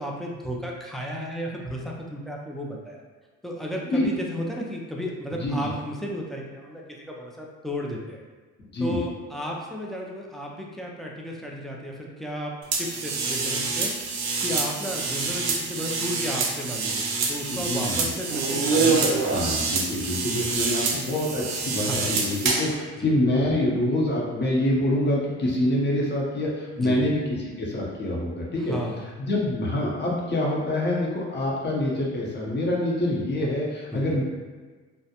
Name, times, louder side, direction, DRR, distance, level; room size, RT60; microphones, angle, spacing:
voice 1, 0.0-3.0 3.4-8.2 8.8-12.5 12.8-13.9 14.4-19.5 19.9-20.1 21.8-22.2 23.0-23.3 26.8-27.1 28.6-29.1 33.9-34.2, equal, ahead, -2 dB, 0.3 m, -34 dB
sound 1, 12.7-22.7, right 4 dB, 75° right, 0.6 m, -26 dB
voice 2, 17.5-18.1 19.2-28.8 29.2-34.2, left 1 dB, 35° left, -3 dB, 0.7 m, -26 dB
2.4 x 2.0 x 2.8 m, 1.4 s
cardioid pair, 95°, 30 cm